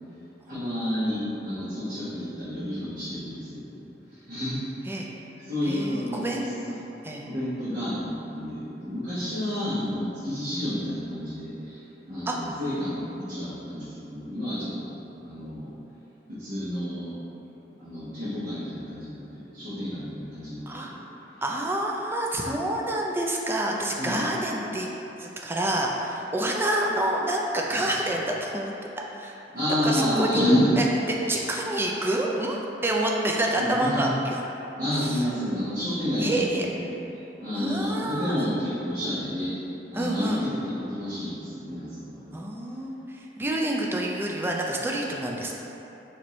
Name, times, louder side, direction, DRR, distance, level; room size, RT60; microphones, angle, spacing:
voice 1, 0.5-3.9 4.3-4.6 5.5-6.5 7.2-11.8 12.1-15.7 16.3-17.1 17.8-21.0 24.0-24.2 27.7-27.8 29.5-30.7 33.6-34.1 34.8-36.9 37.4-39.5 39.9-42.4, left 1 dB, 50° right, -14 dB, 1.0 m, -30 dB
voice 2, 5.6-6.5 7.0-7.3 9.2-10.0 12.3-12.4 20.7-20.9 21.4-24.9 25.2-28.7 29.1-29.4 29.8-30.4 30.8-34.4 34.9-35.2 36.2-36.7 37.5-38.5 39.9-40.5 42.3-45.6, right 1 dB, 15° right, -1 dB, 0.3 m, -28 dB
4.4 x 2.6 x 3.0 m, 2.9 s
head